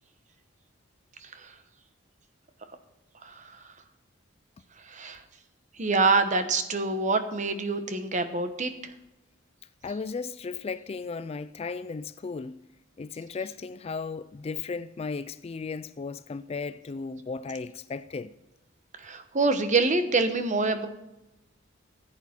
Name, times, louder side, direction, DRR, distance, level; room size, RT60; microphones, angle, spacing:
voice 1, 1.2-1.5 3.2-3.6 4.8-5.2 5.8-8.9 19.0-20.9, right 3 dB, 35° right, 1.0 m, -26 dB
voice 2, 9.8-12.6 13.0-18.3, left 4 dB, 30° left, 0.3 m, -35 dB
15.0 x 8.1 x 4.4 m
head